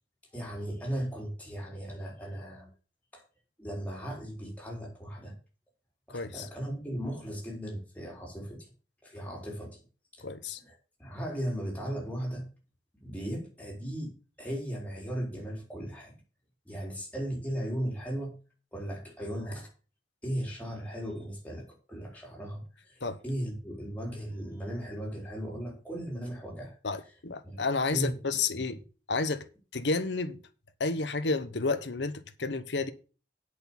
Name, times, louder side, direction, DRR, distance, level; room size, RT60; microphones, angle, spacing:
voice 1, 0.3-2.7 3.1-3.2 3.6-5.3 6.1-8.7 9.0-9.8 10.1-10.2 10.6-10.7 11.0-12.4 13.0-16.2 16.7-18.3 18.7-19.7 20.2-26.8 27.4-27.6 27.9-28.6, equal, 10° left, 4.1 m, -37 dB
voice 2, 6.1-6.5 10.2-10.6 23.0-23.2 26.8-28.8 29.1-29.5 29.7-30.4 30.8-32.9, left 3 dB, 80° left, 1.1 m, -31 dB
8.4 x 6.4 x 7.1 m
head